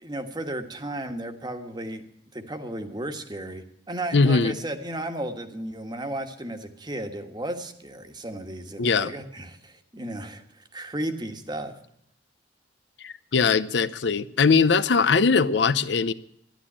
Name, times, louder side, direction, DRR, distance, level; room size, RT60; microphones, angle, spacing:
voice 1, 0.0-2.0 2.3-11.7, right 1 dB, 25° right, 1.4 m, -34 dB
voice 2, 4.1-4.5 8.8-9.1 13.0-16.1, left 4 dB, 70° left, 0.7 m, -21 dB
12.5 x 11.5 x 8.6 m
head